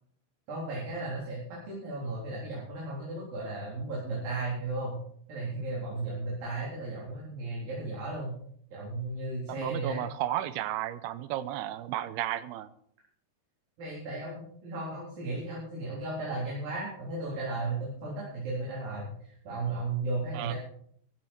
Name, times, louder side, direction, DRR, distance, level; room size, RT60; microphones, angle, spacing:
voice 1, 0.5-1.4 1.7-5.0 5.3-8.4 8.7-10.0 13.8-20.6, right 2 dB, 60° right, -5 dB, 5.6 m, -35 dB
voice 2, 9.5-12.7 20.3-20.5, right 13 dB, 90° right, 14 dB, 2.8 m, -33 dB
15.0 x 14.5 x 4.5 m, 0.65 s
omnidirectional pair, 4.6 m